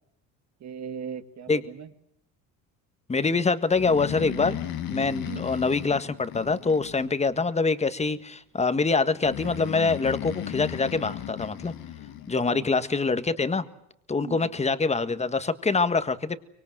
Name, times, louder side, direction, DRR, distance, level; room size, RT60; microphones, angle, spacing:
voice 1, 0.6-1.9 5.3-5.5 12.5-12.7 14.2-14.5, right 7 dB, 50° right, 9 dB, 2.1 m, -38 dB
voice 2, 3.1-4.6 4.9-11.7 12.3-13.6 14.1-16.4, left 4 dB, 20° left, 11 dB, 1.6 m, -25 dB
Breathing, 3.7-7.4 9.2-12.3, left 12 dB, 70° left, 2.0 m, -36 dB
25.0 x 23.5 x 7.7 m, 0.78 s
cardioid pair, 100°, 36 cm